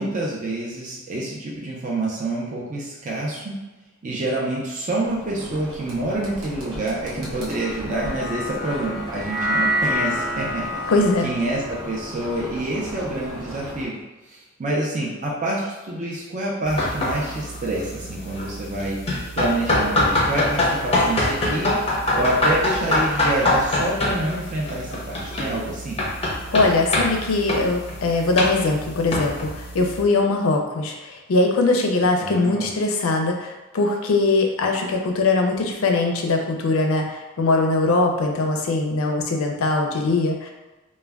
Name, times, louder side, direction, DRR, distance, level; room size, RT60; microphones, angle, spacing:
voice 1, 0.0-3.6 4.0-10.9 11.2-13.9 14.3-19.0 19.4-21.7 22.1-26.0 32.2-32.7, right 2 dB, 40° right, -4 dB, 0.5 m, -27 dB
sound 1, 5.0-13.9, equal, 70° right, 0.8 m, -38 dB
sound 2, 7.5-13.9, equal, 5° left, 0.8 m, -29 dB
voice 2, 10.9-11.3 26.5-40.5, left 3 dB, 85° left, 2 dB, 0.4 m, -21 dB
sound 3, 16.7-30.0, left 1 dB, 30° left, 0.5 m, -24 dB
2.2 x 2.1 x 3.3 m, 1.1 s
head